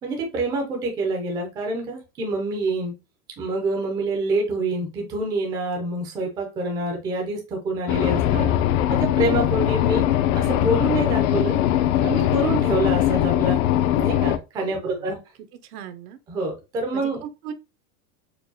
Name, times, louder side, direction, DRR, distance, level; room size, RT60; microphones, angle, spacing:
voice 1, 0.0-2.9 3.4-8.5 8.9-10.0 10.3-11.6 12.0-13.6 13.9-15.2 16.3-17.2, right 2 dB, 10° right, 0.3 m, -26 dB
sound 1, 7.9-14.4, left 12 dB, 65° left, 0.5 m, -21 dB
voice 2, 14.7-15.2 15.6-16.2 16.9-17.5, right 9 dB, 80° right, 0.7 m, -38 dB
4.5 x 2.2 x 2.6 m
supercardioid pair, 150°, 45 cm